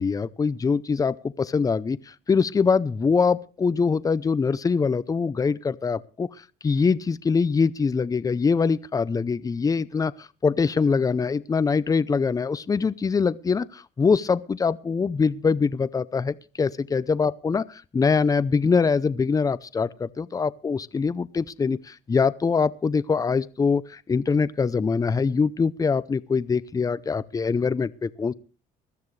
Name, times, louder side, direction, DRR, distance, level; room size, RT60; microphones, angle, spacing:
voice 1, 0.0-2.0 2.3-6.3 6.6-10.1 10.4-17.6 17.9-21.8 22.1-23.8 24.1-28.3, left 5 dB, 20° left, 0.6 m, -23 dB
21.0 x 13.0 x 3.3 m
cardioid pair, 110°, 17 cm